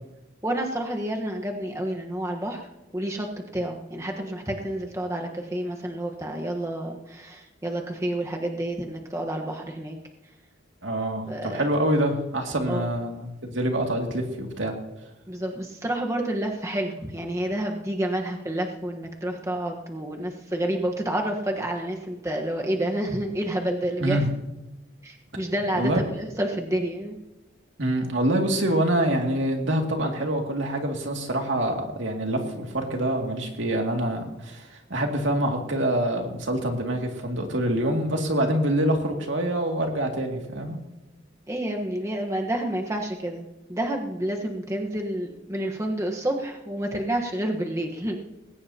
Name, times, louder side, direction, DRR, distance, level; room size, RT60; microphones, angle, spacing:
voice 1, 0.4-2.7 2.9-3.3 3.5-10.0 11.3-11.6 12.7-12.9 15.3-24.2 25.0-27.2 41.5-48.2, right 1 dB, 15° right, 1 dB, 1.3 m, -29 dB
voice 2, 10.8-14.8 24.0-24.3 25.7-26.0 27.8-40.8, right 1 dB, 85° right, 2 dB, 2.4 m, -26 dB
20.0 x 17.5 x 2.9 m, 1.0 s
head